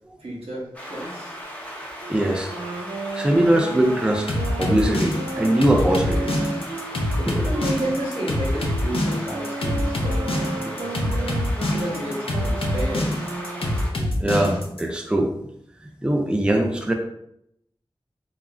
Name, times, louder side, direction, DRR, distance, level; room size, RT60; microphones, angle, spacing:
voice 1, 0.2-1.3 7.4-11.3 11.6-13.1, right 1 dB, 90° right, -5 dB, 0.9 m, -31 dB
sound 1, 0.7-13.9, equal, 15° left, 0.7 m, -37 dB
Wind instrument woodwind instrument, 2.0-7.8 8.5-13.9, right 3 dB, 65° right, 0.5 m, -34 dB
voice 2, 2.1-2.5 3.1-6.4 6.9-7.5 13.8-15.3 16.0-16.9, right 1 dB, 10° right, 2 dB, 0.4 m, -22 dB
sound 2, 4.3-14.8, left 1 dB, 75° left, 0.5 m, -25 dB
3.6 x 2.0 x 2.3 m, 0.76 s
wide cardioid pair, 55°, 10 cm